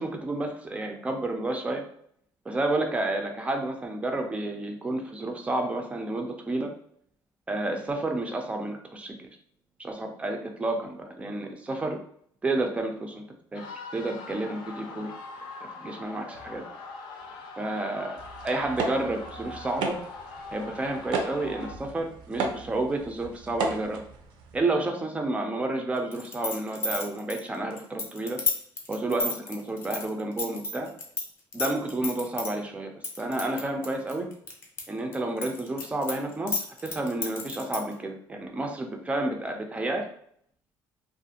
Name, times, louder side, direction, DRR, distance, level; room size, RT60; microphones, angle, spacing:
voice 1, 0.0-1.8 2.5-6.7 7.5-9.3 9.8-12.0 12.4-13.2 13.5-13.6 13.9-15.1 15.8-16.6 17.6-18.2 18.4-20.0 20.5-24.0 24.5-28.4 28.9-30.9 31.5-32.9 33.2-34.3 34.9-40.1, right 2 dB, 15° right, 3 dB, 0.4 m, -30 dB
sound 1, 13.5-21.7, left 3 dB, 70° left, 0.6 m, -42 dB
sound 2, 18.1-24.6, right 4 dB, 70° right, 0.5 m, -35 dB
sound 3, 26.1-31.2 31.5-32.5 33.0-34.8 35.1-37.9, left 3 dB, 30° left, 0.6 m, -31 dB
2.4 x 2.4 x 2.7 m, 0.65 s
cardioid pair, 140°, 8 cm